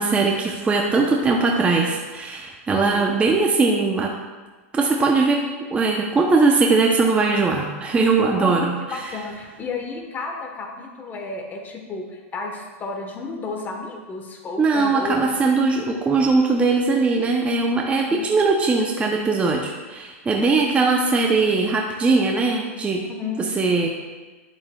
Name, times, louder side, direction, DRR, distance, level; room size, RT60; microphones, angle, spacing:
voice 1, 0.0-4.1 4.7-9.1 14.6-23.0 23.4-23.9, right 3 dB, 15° right, 0 dB, 0.6 m, -20 dB
voice 2, 2.7-3.1 8.3-15.3 18.1-18.2 20.4-20.9 23.1-23.5, left 3 dB, 25° left, 2 dB, 1.1 m, -32 dB
8.8 x 7.2 x 2.3 m, 1.3 s
hypercardioid pair, 115°, 7 cm